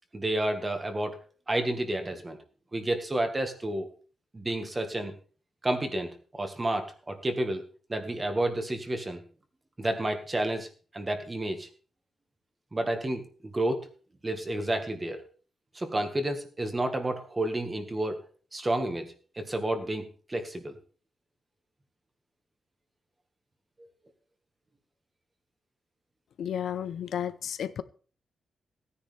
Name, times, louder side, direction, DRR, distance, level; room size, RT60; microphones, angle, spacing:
voice 1, 0.1-1.2 1.5-2.4 2.7-3.9 4.3-5.1 5.6-7.6 7.9-9.2 9.8-10.7 10.9-11.7 12.7-13.9 14.2-15.2 15.7-18.2 18.5-20.8 23.8-23.9, right 1 dB, 20° right, 1.6 m, -30 dB
voice 2, 26.4-27.8, left 9 dB, 90° left, 0.6 m, -32 dB
17.0 x 9.9 x 3.4 m
wide cardioid pair, 175°, 0 cm